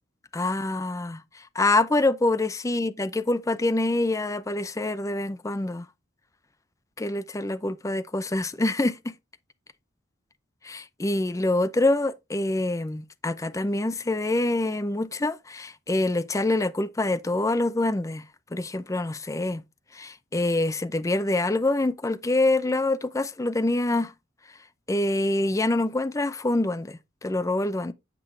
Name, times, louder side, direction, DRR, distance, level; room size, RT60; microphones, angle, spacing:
voice 1, 0.3-5.9 7.0-9.1 10.6-18.2 18.5-19.6 19.9-24.1 24.9-27.9, left 2 dB, 15° left, 0.5 m, -26 dB
7.9 x 6.0 x 3.3 m
head